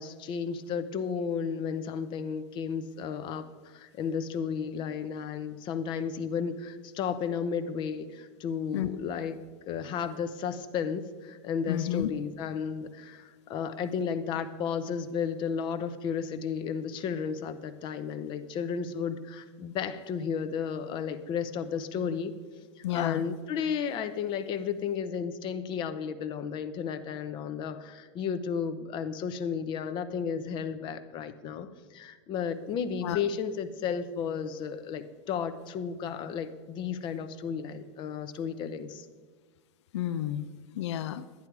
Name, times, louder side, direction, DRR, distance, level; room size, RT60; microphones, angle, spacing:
voice 1, 0.0-9.4 9.7-22.3 22.8-39.1, left 7 dB, 35° left, 11 dB, 0.7 m, -33 dB
voice 2, 11.7-12.1 22.8-23.2 33.0-33.2 39.9-40.5 40.8-41.2, left 11 dB, 85° left, 12 dB, 0.6 m, -30 dB
11.0 x 10.5 x 4.7 m, 1.4 s
supercardioid pair, 145°, 14 cm